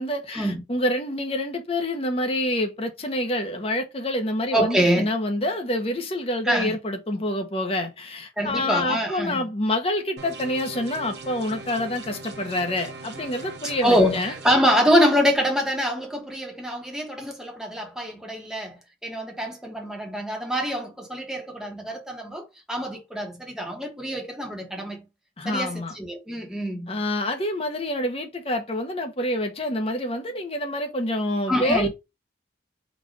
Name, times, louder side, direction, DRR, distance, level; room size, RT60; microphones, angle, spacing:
voice 1, 0.0-14.3 25.4-25.9 26.9-31.9, left 1 dB, 35° left, 0.9 m, -27 dB
voice 2, 4.5-5.1 6.4-6.8 8.4-9.4 13.8-25.0 25.4-26.9 31.5-31.9, equal, 5° right, 1.2 m, -25 dB
sound 1, 10.2-14.5, right 3 dB, 75° right, 1.0 m, -40 dB
4.0 x 2.5 x 4.8 m
head